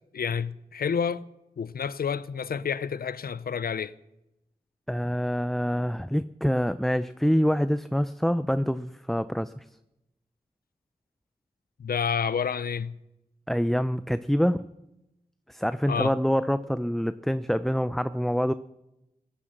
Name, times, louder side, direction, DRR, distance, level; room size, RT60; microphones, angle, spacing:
voice 1, 0.1-1.2 1.6-3.9 11.8-13.0 15.9-16.1, left 6 dB, 70° left, 0.5 m, -29 dB
voice 2, 4.9-9.5 13.5-14.7 15.5-18.5, equal, ahead, 0.6 m, -26 dB
17.5 x 11.5 x 6.6 m
cardioid pair, 40°, 16 cm